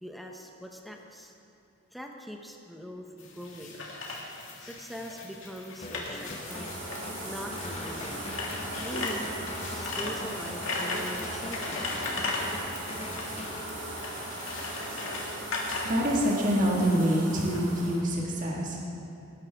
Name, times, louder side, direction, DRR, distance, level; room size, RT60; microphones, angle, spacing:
voice 1, 0.0-1.3 1.9-3.9 4.6-6.7 7.2-8.3 8.8-9.4 9.7-11.8, equal, ahead, 1 dB, 0.8 m, -42 dB
sound 1, 3.2-17.6, left 2 dB, 65° left, 2.0 m, -37 dB
sound 2, 5.8-14.2, left 2 dB, 30° left, 0.7 m, -42 dB
sound 3, 6.2-18.0, right 1 dB, 65° right, 2.8 m, -39 dB
voice 2, 15.8-18.9, equal, 40° right, -4 dB, 1.7 m, -26 dB
18.5 x 9.7 x 3.5 m, 2.9 s
head